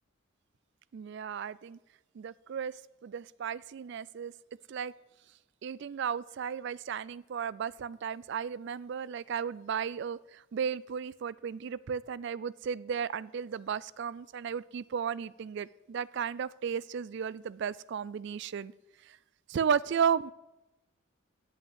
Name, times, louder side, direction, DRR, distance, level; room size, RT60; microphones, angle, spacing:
voice 1, 0.9-1.8 2.2-2.7 3.0-4.3 4.7-4.9 5.6-18.7 19.1-19.2 19.5-20.3, right 7 dB, 55° right, 20 dB, 0.3 m, -34 dB
8.4 x 7.9 x 7.9 m, 1.0 s
head